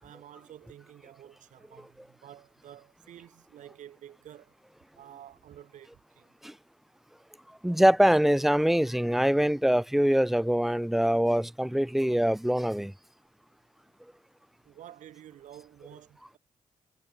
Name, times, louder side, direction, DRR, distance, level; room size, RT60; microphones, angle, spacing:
voice 1, 0.0-4.5 4.9-6.4 14.6-16.4, right 11 dB, 80° right, 5.1 m, -50 dB
voice 2, 7.6-12.9, equal, ahead, 0.4 m, -24 dB
cardioid pair, 75°, 13 cm